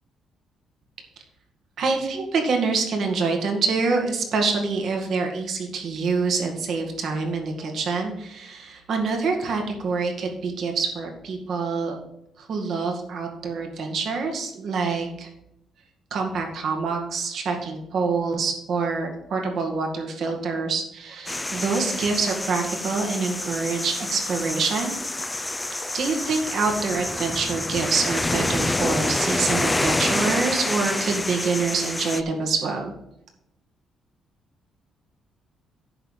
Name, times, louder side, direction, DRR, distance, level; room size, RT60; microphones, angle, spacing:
voice 1, 1.8-12.0 12.4-15.3 16.1-24.9 25.9-32.9, right 4 dB, 65° right, 2 dB, 2.0 m, -26 dB
sound 1, 21.3-32.2, left 2 dB, 15° left, 0.6 m, -27 dB
10.0 x 4.1 x 7.2 m, 0.83 s
cardioid pair, 90°, 0 cm